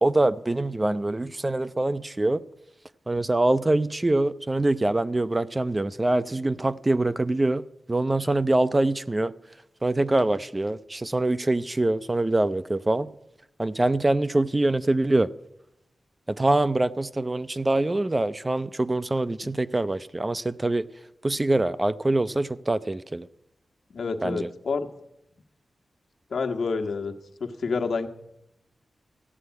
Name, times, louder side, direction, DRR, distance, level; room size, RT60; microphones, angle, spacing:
voice 1, 0.0-2.4 3.1-9.3 9.8-13.1 13.6-15.3 16.3-20.9 21.2-23.3 24.2-24.5, right 2 dB, 20° right, 0.4 m, -24 dB
voice 2, 23.9-24.9 26.3-27.1 27.4-28.1, left 4 dB, 70° left, 1.4 m, -28 dB
14.5 x 9.2 x 9.4 m
wide cardioid pair, 125°, 0 cm